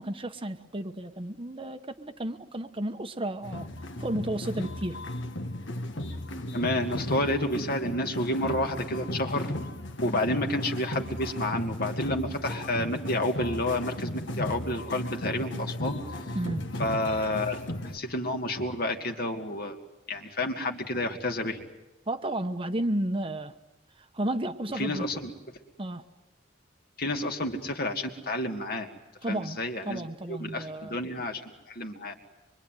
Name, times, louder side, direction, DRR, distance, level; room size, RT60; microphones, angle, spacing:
voice 1, 0.0-3.7 4.0-5.0 16.3-16.7 22.1-23.5 24.0-25.0 25.8-26.0 29.2-29.6 29.8-31.0, right 1 dB, 25° right, 7 dB, 1.1 m, -32 dB
sound 1, 3.4-18.0, left 1 dB, 65° left, 1.7 m, -35 dB
voice 2, 6.5-9.5 10.0-16.1 16.8-17.6 17.9-19.8 20.1-21.6 24.8-25.3 27.0-28.9 29.3-32.2, left 1 dB, 50° left, 4 dB, 2.5 m, -30 dB
26.0 x 24.0 x 9.2 m, 1.0 s
head